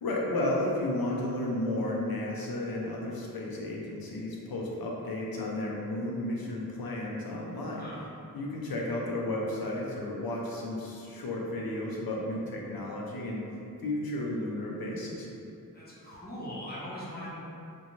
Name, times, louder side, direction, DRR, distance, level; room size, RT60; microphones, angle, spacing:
voice 1, 0.0-7.9 8.3-13.5 13.8-15.3, left 1 dB, 90° left, -2 dB, 0.5 m, -33 dB
voice 2, 7.6-8.1 15.7-17.3, equal, 25° left, -9 dB, 0.8 m, -41 dB
2.5 x 2.2 x 2.9 m, 2.6 s
wide cardioid pair, 70°, 34 cm